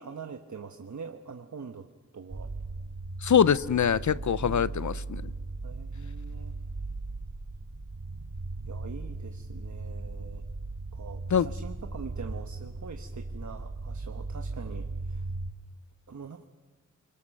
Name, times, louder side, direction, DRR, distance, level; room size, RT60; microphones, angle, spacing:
voice 1, 0.0-2.5 4.4-5.0 5.6-6.6 8.7-10.4 10.9-15.3 16.1-16.5, right 5 dB, 65° right, 6 dB, 1.2 m, -44 dB
sound 1, 2.3-15.5, right 3 dB, 45° right, 1.7 m, -37 dB
voice 2, 3.2-5.2 11.3-11.5, left 8 dB, 65° left, 17 dB, 0.7 m, -24 dB
29.5 x 21.5 x 6.6 m, 1.3 s
wide cardioid pair, 85°, 31 cm